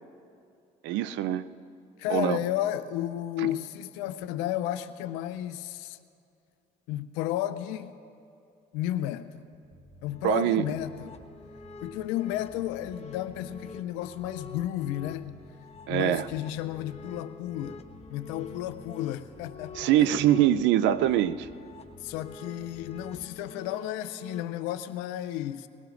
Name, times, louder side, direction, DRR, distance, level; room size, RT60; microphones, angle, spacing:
voice 1, 0.8-1.5 2.1-2.4 3.4-3.5 10.2-10.6 15.9-16.3 19.8-21.5, right 11 dB, 75° right, 15 dB, 0.5 m, -23 dB
voice 2, 2.0-6.0 6.9-7.9 8.7-9.4 10.0-11.2 11.8-15.4 15.9-17.8 18.1-20.1 22.0-25.7, left 13 dB, 85° left, 12 dB, 0.6 m, -33 dB
sound 1, 9.5-10.3 10.6-12.0 12.3-13.7 14.0-15.4 15.7-17.1 17.4-18.8 19.2-20.6 20.9-22.3 22.6-23.3, right 1 dB, ahead, 1.7 m, -53 dB
sound 2, 10.1-24.4, left 4 dB, 35° left, 1.0 m, -47 dB
22.0 x 18.0 x 2.5 m, 2.4 s
hypercardioid pair, 55°, 19 cm